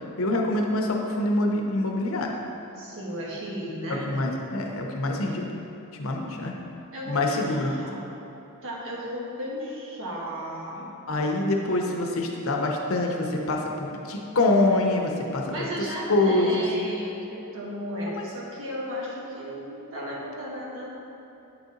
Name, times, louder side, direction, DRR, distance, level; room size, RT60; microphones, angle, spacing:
voice 1, 0.2-2.3 3.9-5.5 6.0-6.5 7.1-7.8 11.1-15.7 16.1-16.7 18.1-18.2, left 2 dB, 65° left, 1 dB, 0.7 m, -25 dB
voice 2, 2.8-4.0 6.2-6.4 6.9-7.4 7.8-8.1 8.6-10.9 15.5-20.9, equal, 60° right, -4 dB, 1.3 m, -34 dB
8.9 x 4.0 x 3.8 m, 2.9 s
head